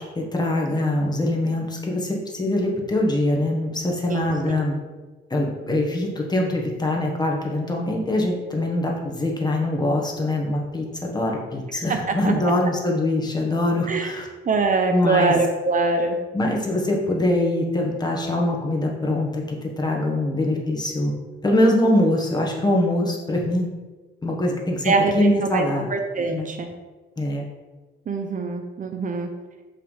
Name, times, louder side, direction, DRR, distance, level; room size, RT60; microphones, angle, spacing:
voice 1, 0.1-4.7 5.3-14.3 14.9-15.3 16.3-21.1 21.4-23.7 24.2-25.9 26.3-26.5 27.2-27.5, left 1 dB, 20° left, -1 dB, 1.3 m, -23 dB
voice 2, 11.7-12.3 13.9-14.1 14.5-16.2 24.8-26.7 28.1-29.3, right 3 dB, 40° right, 5 dB, 0.6 m, -23 dB
5.7 x 3.4 x 5.5 m, 1.3 s
cardioid pair, 90°, 20 cm